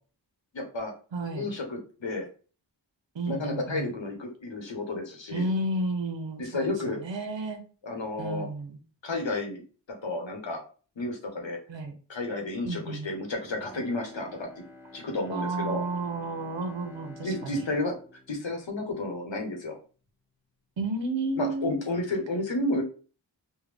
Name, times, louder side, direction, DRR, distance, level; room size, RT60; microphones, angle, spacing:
voice 1, 0.5-0.9 1.2-2.3 3.3-5.5 6.4-7.0 7.8-8.5 9.0-9.6 10.0-10.6 11.0-11.6 12.1-14.5 14.9-15.8 17.2-17.9 18.3-19.8 21.4-22.8, left 2 dB, 80° left, 2 dB, 1.1 m, -31 dB
voice 2, 1.1-1.5 3.1-3.9 5.3-7.6 8.2-8.8 11.7-11.9 12.6-13.1 15.3-17.6 20.8-21.9, right 2 dB, 80° right, 5 dB, 0.8 m, -32 dB
Bowed string instrument, 13.4-19.6 20.0-20.1, left 1 dB, 5° right, 0.8 m, -50 dB
3.6 x 2.2 x 3.3 m, 0.38 s
wide cardioid pair, 65°, 45 cm